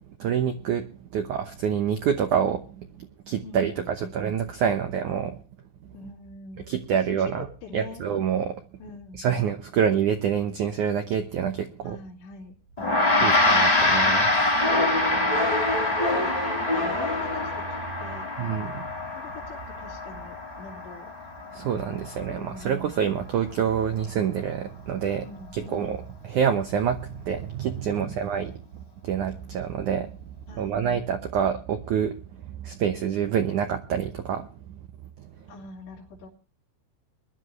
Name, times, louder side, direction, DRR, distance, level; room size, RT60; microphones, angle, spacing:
voice 1, 0.2-5.4 6.7-7.5 7.7-8.6 9.1-12.0 13.2-14.7 18.4-18.9 21.5-26.0 26.2-28.6 29.0-32.2 32.5-34.8 35.2-35.3, right 8 dB, 80° right, 7 dB, 1.7 m, -27 dB
voice 2, 3.4-4.2 5.9-8.0 8.8-9.2 11.8-13.5 15.1-15.6 16.1-18.3 19.2-21.1 22.3-22.8 25.2-25.9 27.8-28.2 30.5-30.8 35.5-36.3, left 4 dB, 75° left, -4 dB, 5.1 m, -44 dB
Gong, 12.8-22.4, left 2 dB, 40° left, 0.5 m, -25 dB
sound 1, 14.6-18.1, left 1 dB, 20° right, 0.8 m, -28 dB
22.0 x 12.0 x 3.2 m, 0.37 s
omnidirectional pair, 5.1 m